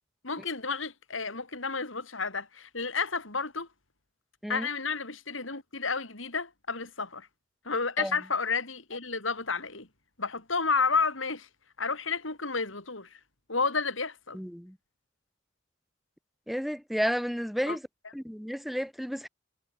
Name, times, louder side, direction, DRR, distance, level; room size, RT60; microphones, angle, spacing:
voice 1, 0.2-3.7 4.5-7.3 7.6-9.9 10.2-11.5 11.8-13.2 13.5-14.4 17.7-17.8, left 4 dB, 85° left, 4.7 m, -31 dB
voice 2, 14.3-14.8 16.5-17.8 18.1-19.3, equal, ahead, 6.2 m, -32 dB
head